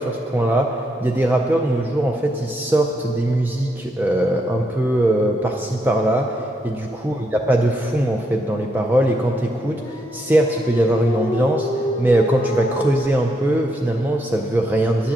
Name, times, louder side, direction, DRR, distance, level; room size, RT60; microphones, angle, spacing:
voice 1, 0.0-11.7 12.0-15.1, right 1 dB, 10° right, 2 dB, 0.4 m, -20 dB
Dog, 9.6-13.1, left 1 dB, 25° left, 0.7 m, -28 dB
10.5 x 7.3 x 7.5 m, 2.8 s
head